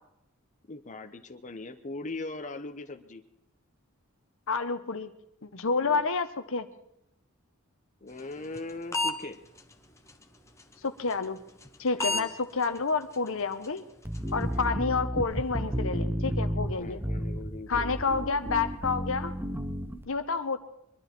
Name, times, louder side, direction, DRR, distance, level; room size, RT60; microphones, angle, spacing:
voice 1, 0.7-3.2 5.7-6.0 8.0-9.4 11.9-12.3 14.4-14.8 16.8-18.4, left 2 dB, 35° left, 6 dB, 0.9 m, -40 dB
voice 2, 4.5-5.1 5.4-6.7 10.8-11.4 11.8-13.8 14.3-17.0 17.7-19.4 20.1-20.6, left 4 dB, 65° left, 10 dB, 1.1 m, -29 dB
sound 1, 8.2-9.2 9.6-9.7 10.1-10.2 10.6-10.7 11.1-11.2 11.6-11.7 12.0-12.3 12.6-12.8 13.1-13.3 13.6-13.8 14.1-14.3, left 2 dB, 15° left, 1.2 m, -30 dB
sound 2, 14.1-20.0, equal, 10° right, 1.0 m, -32 dB
22.5 x 12.0 x 4.5 m, 0.84 s
head